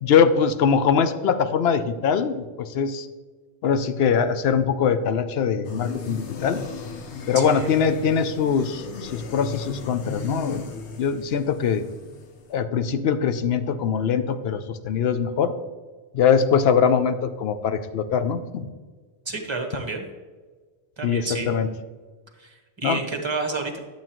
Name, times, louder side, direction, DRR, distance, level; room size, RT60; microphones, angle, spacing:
voice 1, 0.0-3.1 3.6-6.6 7.3-10.6 11.0-11.9 12.5-15.5 16.1-18.7 21.0-21.7 22.8-23.0, left 7 dB, 70° left, 10 dB, 0.8 m, -22 dB
sound 1, 5.6-12.5, left 4 dB, 85° left, 1.1 m, -36 dB
voice 2, 7.3-7.7 19.2-20.1 21.0-21.5 22.4-23.8, right 3 dB, 25° right, 3 dB, 1.2 m, -30 dB
11.0 x 7.4 x 3.0 m, 1.4 s
omnidirectional pair, 1.1 m